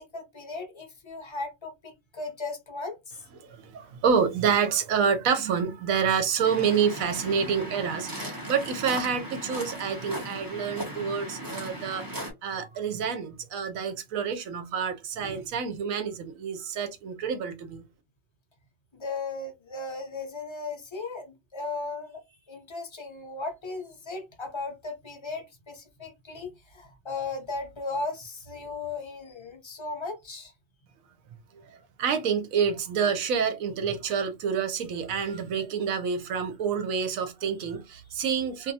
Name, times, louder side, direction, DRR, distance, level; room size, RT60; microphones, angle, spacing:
voice 1, 0.0-3.2 15.2-15.4 18.9-22.2 22.5-30.5, left 3 dB, 35° left, 0.4 m, -36 dB
voice 2, 3.3-12.1 12.4-17.8 32.0-38.7, right 6 dB, 85° right, 1.1 m, -28 dB
Waves surf, 6.4-12.3, equal, 20° right, 0.7 m, -37 dB
2.6 x 2.3 x 2.7 m
omnidirectional pair, 1.4 m